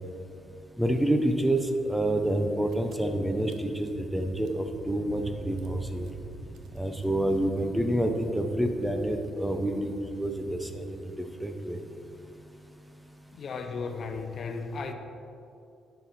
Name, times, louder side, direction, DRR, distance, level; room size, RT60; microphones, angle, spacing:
voice 1, 0.8-6.1 6.7-11.8, right 1 dB, 5° right, 5 dB, 0.8 m, -28 dB
Car / Engine, 2.7-11.1, right 4 dB, 80° right, 0.7 m, -45 dB
voice 2, 13.3-14.9, left 4 dB, 55° left, 6 dB, 0.7 m, -35 dB
9.2 x 6.6 x 4.2 m, 2.6 s
cardioid pair, 90°, 0 cm